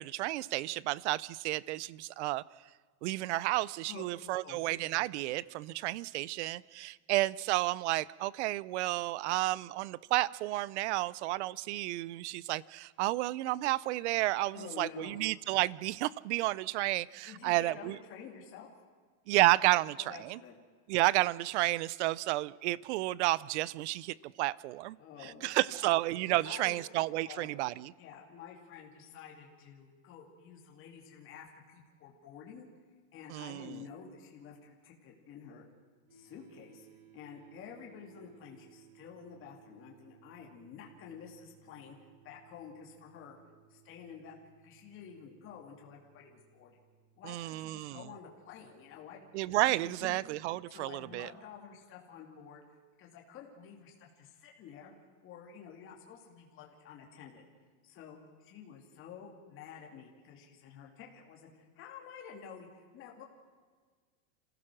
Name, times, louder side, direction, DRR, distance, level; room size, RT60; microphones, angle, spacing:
voice 1, 0.0-2.4 3.0-18.0 19.3-20.4 20.9-25.0 25.2-27.9 33.3-33.8 47.2-48.0 49.3-51.3, right 18 dB, 55° right, 22 dB, 0.6 m, -31 dB
voice 2, 3.9-4.6 14.5-15.2 17.2-18.7 20.0-20.6 25.0-25.9 26.3-26.8 27.2-27.5 28.0-32.7 33.1-35.6 36.1-36.9 37.1-42.0 42.2-43.4 43.7-44.4 44.6-46.8 47.2-49.2 49.6-50.2 50.7-52.6 53.0-54.9 55.2-57.4 57.8-63.2, left 7 dB, 30° left, 0 dB, 2.6 m, -50 dB
sound 1, 36.1-51.3, right 9 dB, 75° right, 7.7 m, -63 dB
27.0 x 16.0 x 6.2 m, 1.5 s
supercardioid pair, 160°, 43 cm